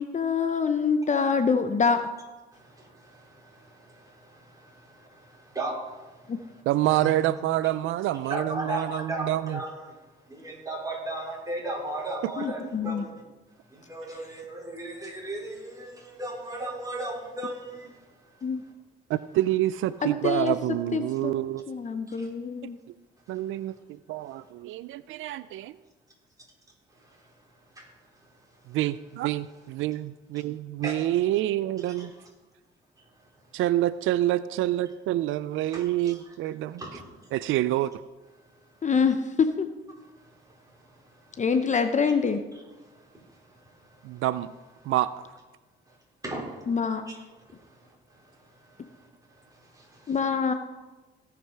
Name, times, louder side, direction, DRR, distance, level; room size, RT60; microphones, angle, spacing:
voice 1, 0.0-2.1 6.3-6.4 12.4-13.0 18.4-18.6 20.0-20.5 20.9-21.3 21.7-22.8 38.8-39.7 41.4-42.4 46.7-47.0 50.1-50.5, left 5 dB, 35° left, 9 dB, 0.8 m, -25 dB
voice 2, 2.5-6.6 7.0-7.2 8.3-10.0 10.3-13.1 13.7-18.0 21.1-21.2 22.1-22.3 27.0-27.2 27.8-27.9 30.8-31.0 32.0-32.1 35.7-36.3 36.8-37.0 40.0-41.4 41.7-41.8 42.8-44.2 44.8-44.9 45.9-46.0 46.2-46.7 47.1-47.2 47.5-49.1 49.4-50.2, right 1 dB, 15° right, -2 dB, 4.1 m, -38 dB
voice 3, 6.7-9.6 19.1-21.6 23.3-25.8 28.7-32.1 33.5-36.8 37.3-37.9 44.0-44.5 44.9-45.1, right 14 dB, 85° right, 16 dB, 0.4 m, -27 dB
17.0 x 6.0 x 5.6 m, 1.2 s
cardioid pair, 90°, 20 cm